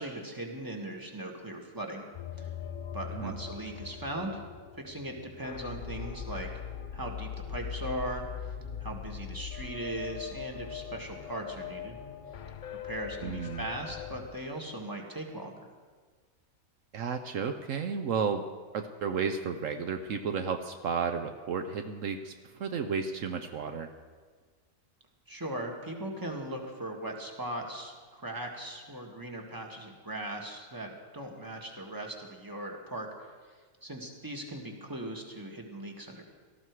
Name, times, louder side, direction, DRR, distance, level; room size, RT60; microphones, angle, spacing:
voice 1, 0.0-2.0 2.4-2.5 2.9-4.4 4.8-6.5 6.9-8.2 8.8-12.0 12.8-15.5 25.3-33.4 33.8-36.2, right 1 dB, 15° right, 1 dB, 1.8 m, -39 dB
sound 1, 2.1-14.3, left 8 dB, 50° left, 0.6 m, -41 dB
voice 2, 13.2-13.7 16.9-18.5 18.7-23.9, right 6 dB, 70° right, 7 dB, 1.1 m, -33 dB
18.0 x 13.5 x 4.8 m, 1.5 s
omnidirectional pair, 1.4 m